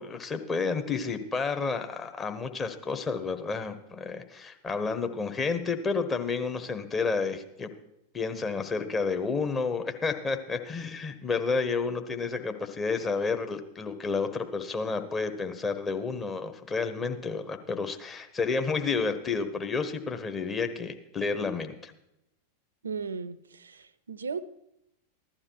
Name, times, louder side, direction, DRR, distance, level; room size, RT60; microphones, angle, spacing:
voice 1, 0.0-7.7 8.1-21.9, left 4 dB, 20° left, 7 dB, 1.3 m, -30 dB
voice 2, 22.8-24.4, right 5 dB, 75° right, 17 dB, 0.6 m, -36 dB
15.5 x 11.5 x 4.7 m, 0.85 s
figure-of-eight pair, 90°, 0 cm